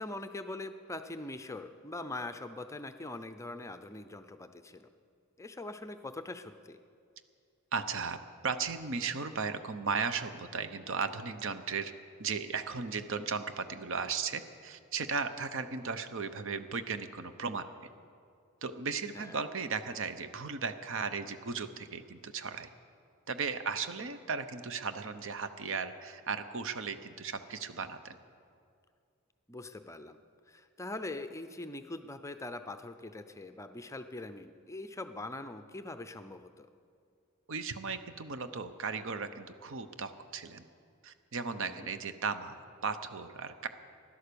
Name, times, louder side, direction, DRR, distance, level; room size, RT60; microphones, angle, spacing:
voice 1, 0.0-4.9 5.4-6.8 19.1-19.4 29.5-30.2 30.5-36.7 41.7-41.9, left 2 dB, 15° left, 9 dB, 0.5 m, -42 dB
voice 2, 7.7-8.2 8.4-11.9 12.2-17.7 18.6-22.7 23.3-28.2 37.5-40.6 41.0-43.7, right 5 dB, 60° right, 10 dB, 0.9 m, -36 dB
16.0 x 11.5 x 6.9 m, 2.3 s
head